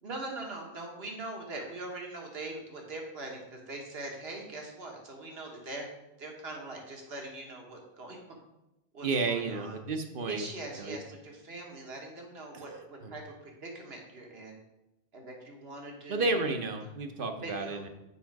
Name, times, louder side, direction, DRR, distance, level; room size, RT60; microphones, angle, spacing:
voice 1, 0.0-5.9 6.2-8.2 8.9-9.7 10.2-14.6 15.1-16.4 17.4-17.9, right 2 dB, 80° right, 1 dB, 1.5 m, -42 dB
voice 2, 9.0-10.4 10.8-11.0 12.5-13.1 16.1-17.9, right 3 dB, 60° right, 5 dB, 0.9 m, -32 dB
7.1 x 4.9 x 4.6 m, 0.94 s
omnidirectional pair, 1.0 m